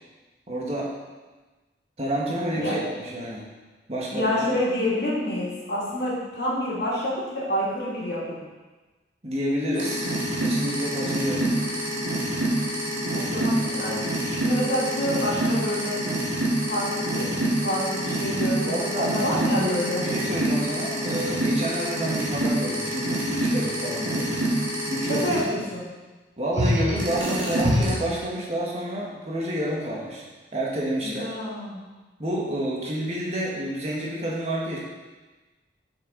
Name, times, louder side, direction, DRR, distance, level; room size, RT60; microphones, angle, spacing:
voice 1, 0.5-0.9 2.0-3.5 3.9-4.3 9.2-10.1 10.4-11.5 13.4-13.6 18.6-24.3 24.9-25.6 26.4-30.2 30.5-31.3 32.2-34.8, equal, 35° right, -4 dB, 1.5 m, -29 dB
voice 2, 4.1-8.4 13.1-16.0 16.7-20.0 21.9-22.2 25.1-25.8 31.0-31.9, left 1 dB, 65° left, -7 dB, 2.5 m, -28 dB
sound 1, 9.7-25.4 26.5-28.0, right 1 dB, 85° right, 2.0 m, -26 dB
7.0 x 6.2 x 3.9 m, 1.2 s
head